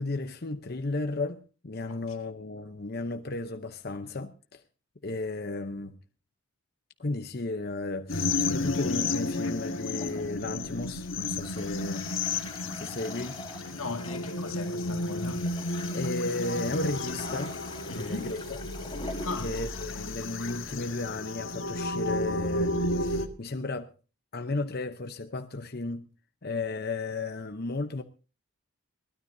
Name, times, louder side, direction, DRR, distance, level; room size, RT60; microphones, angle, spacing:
voice 1, 0.0-4.6 5.0-6.0 7.0-12.0 12.3-12.4 12.7-13.4 15.9-17.6 17.8-18.4 19.4-23.9 24.3-26.0 26.4-28.0, left 2 dB, 50° left, 0.8 m, -34 dB
sound 1, 8.1-23.3, left 2 dB, 65° left, 1.5 m, -32 dB
Toilet flush, 9.8-21.6, left 3 dB, 20° left, 3.4 m, -45 dB
voice 2, 13.7-15.5 17.9-18.3 19.2-19.5, left 3 dB, 85° left, 1.9 m, -37 dB
22.0 x 16.5 x 2.7 m
head